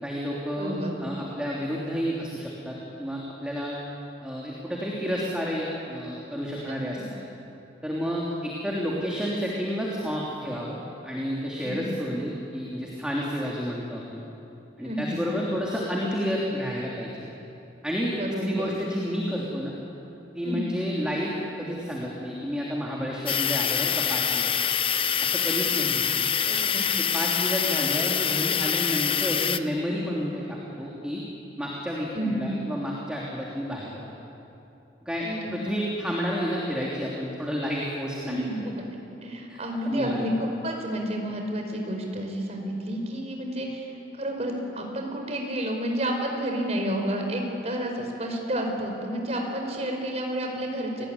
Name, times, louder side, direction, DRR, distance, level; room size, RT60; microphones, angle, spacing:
voice 1, 0.0-3.7 4.2-7.0 7.8-10.8 11.0-14.2 14.8-17.3 17.8-18.1 18.4-19.7 20.3-24.5 25.2-26.0 27.0-31.2 31.6-34.0 35.0-38.4 39.5-39.6 39.8-40.2, equal, 5° right, -4 dB, 3.2 m, -30 dB
voice 2, 0.6-1.0 6.6-6.8 11.6-11.9 14.8-15.2 18.2-18.7 20.4-20.6 26.4-26.9 32.1-32.5 35.2-35.6 38.2-38.7 39.2-51.1, equal, 35° right, 2 dB, 4.9 m, -30 dB
sound 1, 23.3-29.6, left 8 dB, 30° left, 0.7 m, -25 dB
29.5 x 20.0 x 9.8 m, 2.9 s
head